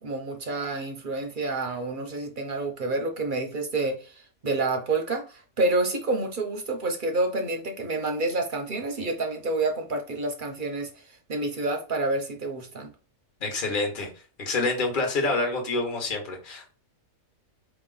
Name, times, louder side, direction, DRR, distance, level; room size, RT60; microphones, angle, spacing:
voice 1, 0.0-12.9, right 2 dB, 45° right, 0.7 m, -28 dB
voice 2, 13.4-14.1 14.4-16.7, left 3 dB, 40° left, 1.2 m, -27 dB
4.5 x 3.0 x 3.8 m
omnidirectional pair, 1.5 m